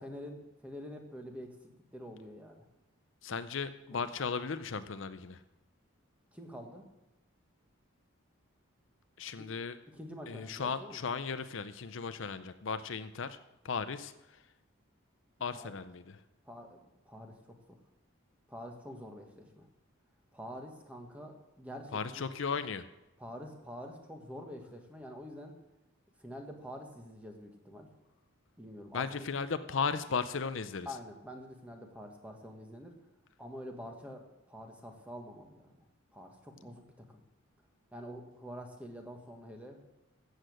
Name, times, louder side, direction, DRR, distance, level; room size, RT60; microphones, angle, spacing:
voice 1, 0.0-1.5 1.9-2.6 3.9-4.1 6.3-6.8 9.4-9.5 9.9-11.0 15.5-15.7 16.5-17.3 17.7-17.8 18.5-19.7 20.3-22.2 23.2-25.6 26.2-27.9 28.6-29.1 30.8-32.9 33.4-35.7 36.1-36.8 37.1-37.2 37.9-39.8, equal, 5° right, 3 dB, 1.5 m, -46 dB
voice 2, 3.2-5.4 9.2-9.8 10.3-13.4 13.6-14.1 15.4-16.0 21.9-22.8 28.9-30.9, left 5 dB, 65° left, 11 dB, 0.6 m, -36 dB
14.0 x 8.2 x 6.4 m, 0.96 s
head